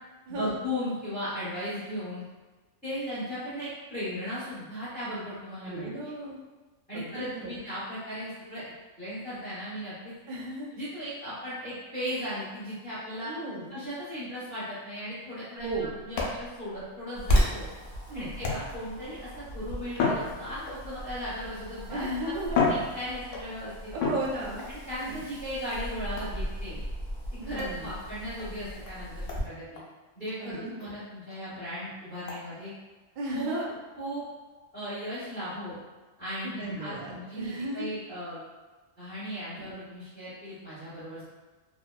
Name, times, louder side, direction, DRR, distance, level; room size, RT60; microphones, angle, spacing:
voice 1, 0.3-2.2 2.8-5.9 6.9-8.6 9.0-10.1 10.7-13.3 13.7-17.7 18.1-22.1 22.6-23.9 24.7-26.8 27.4-29.8 30.2-32.7 33.3-33.5 34.0-34.2 34.7-35.8 36.2-38.4 39.0-41.2, equal, 10° left, -13 dB, 0.7 m, -37 dB
voice 2, 5.7-6.4 6.9-7.6 10.3-10.7 13.2-13.7 15.6-15.9 18.1-18.3 21.9-22.6 23.9-24.6 25.1-25.2 27.4-27.9 30.4-31.0 33.2-33.7 36.4-37.9 39.5-39.7, right 1 dB, 60° right, -2 dB, 0.5 m, -35 dB
sound 1, 15.6-17.7 18.4-19.0 19.9-21.0 21.8-21.9 22.4-23.5 24.0-24.7 26.2-26.5 27.6-27.8 28.4-28.5 28.8-28.9 29.3-29.4 29.7-29.9 30.3-30.4 30.8-30.9 31.3-31.4 32.3-32.4, left 3 dB, 80° left, 0.9 m, -31 dB
Wind, 17.1-29.4, equal, 55° left, 0.9 m, -35 dB
2.8 x 2.1 x 2.2 m, 1.3 s
omnidirectional pair, 1.3 m